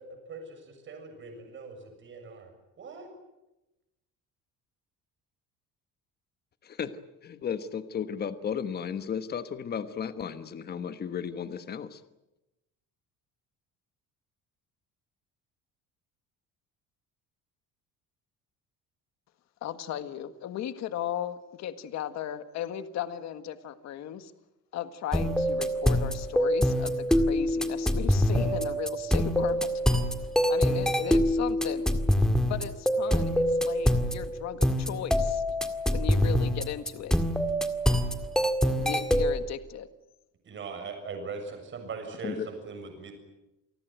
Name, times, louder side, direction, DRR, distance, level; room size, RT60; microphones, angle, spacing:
voice 1, 0.0-2.5 2.8-3.1 40.4-43.1, right 4 dB, 35° right, 5 dB, 7.2 m, -41 dB
voice 2, 6.6-12.0 42.2-42.5, left 7 dB, 30° left, 11 dB, 1.3 m, -34 dB
voice 3, 19.6-24.3 24.7-29.8 30.5-31.8 32.5-35.4 35.9-37.1 38.6-39.9, left 10 dB, 55° left, 10 dB, 1.7 m, -36 dB
sound 1, 25.1-39.4, equal, ahead, 1.9 m, -25 dB
28.5 x 19.5 x 9.2 m, 0.96 s
cardioid pair, 170°, 32 cm